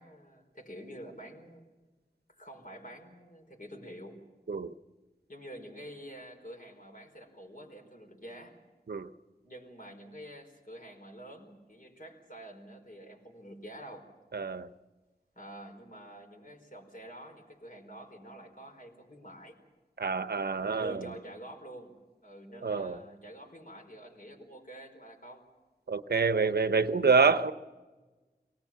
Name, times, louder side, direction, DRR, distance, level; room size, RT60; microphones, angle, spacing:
voice 1, 0.0-1.6 2.3-4.2 5.3-8.6 9.4-14.0 15.3-19.6 20.6-25.4 26.7-27.0, right 1 dB, 60° left, 4.7 m, -47 dB
voice 2, 14.3-14.7 20.0-21.0 22.6-23.0 25.9-27.5, right 4 dB, 75° right, 0.7 m, -27 dB
24.0 x 19.0 x 7.4 m
wide cardioid pair, 55°, 17 cm